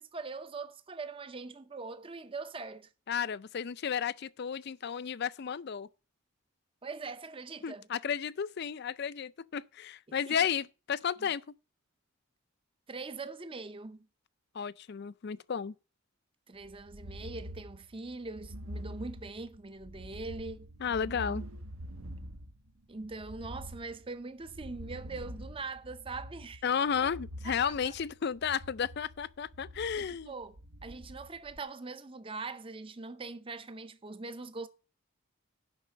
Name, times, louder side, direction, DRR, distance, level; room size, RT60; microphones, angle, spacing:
voice 1, 0.0-2.9 6.8-7.9 10.3-10.4 11.2-11.3 12.9-14.0 16.5-20.7 22.9-26.6 27.4-27.9 30.0-34.7, right 3 dB, 25° right, 0.6 m, -42 dB
voice 2, 3.1-5.9 7.6-11.4 14.5-15.7 20.8-21.4 26.6-30.3, left 7 dB, 50° left, 0.4 m, -33 dB
sound 1, 16.6-31.6, equal, 90° right, 1.1 m, -46 dB
10.5 x 4.2 x 7.4 m
head